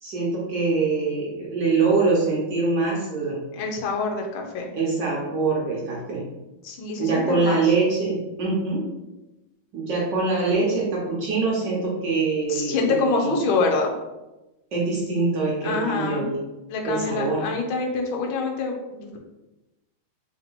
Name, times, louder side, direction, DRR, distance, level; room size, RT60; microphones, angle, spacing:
voice 1, 0.0-3.4 4.7-6.2 7.0-8.8 9.7-13.3 14.7-16.4 16.8-17.4, right 3 dB, 65° right, -4 dB, 1.4 m, -24 dB
voice 2, 3.5-4.7 6.6-7.7 12.5-13.9 15.6-16.3 16.7-19.2, left 4 dB, 75° left, 1 dB, 1.5 m, -26 dB
3.8 x 2.9 x 4.0 m, 1.0 s
omnidirectional pair, 2.3 m